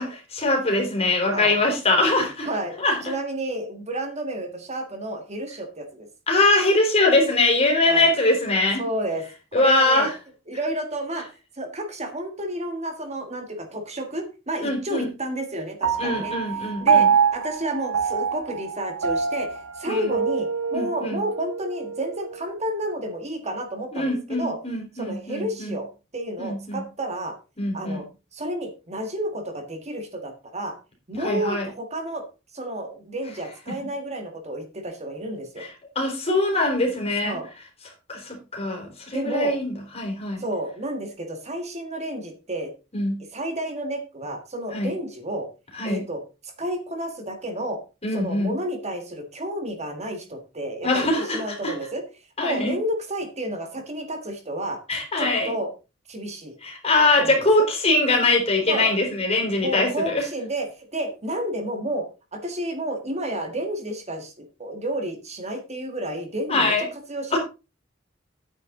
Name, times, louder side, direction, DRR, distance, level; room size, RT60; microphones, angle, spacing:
voice 1, 0.0-2.5 2.8-3.1 6.3-8.8 9.5-10.1 14.6-15.1 16.0-17.1 19.9-20.2 20.7-21.2 23.9-25.8 26.4-26.8 27.6-28.0 31.2-31.7 36.0-37.4 38.1-40.4 42.9-43.2 44.7-44.9 45.7-46.0 48.0-48.5 50.8-51.7 52.4-52.7 54.9-55.5 56.6-60.2 66.5-66.9 67.3-67.4, left 2 dB, 30° left, 1 dB, 4.0 m, -22 dB
voice 2, 2.4-2.8 3.0-6.1 7.8-8.1 8.8-9.2 9.6-10.1 10.5-11.3 11.6-16.3 16.8-24.6 25.0-25.9 26.1-27.3 27.7-28.0 28.3-30.7 31.1-32.2 32.5-35.7 37.2-37.5 39.1-39.5 40.4-42.7 43.3-45.5 45.8-47.8 48.1-52.0 52.4-54.8 55.2-55.7 56.1-56.6 57.2-57.7 58.7-58.9 59.6-67.4, right 1 dB, 35° right, 5 dB, 1.7 m, -31 dB
Piano, 15.8-22.5, right 6 dB, 85° right, 1.3 m, -25 dB
10.0 x 9.1 x 3.8 m, 0.30 s
head